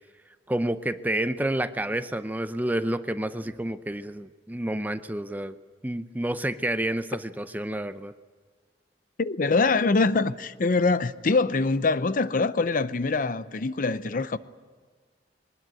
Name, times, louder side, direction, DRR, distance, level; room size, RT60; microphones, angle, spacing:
voice 1, 0.5-5.6 5.8-8.1, right 1 dB, 10° right, 0.6 m, -29 dB
voice 2, 9.2-14.4, left 3 dB, 50° left, 0.6 m, -24 dB
22.0 x 20.0 x 9.0 m
head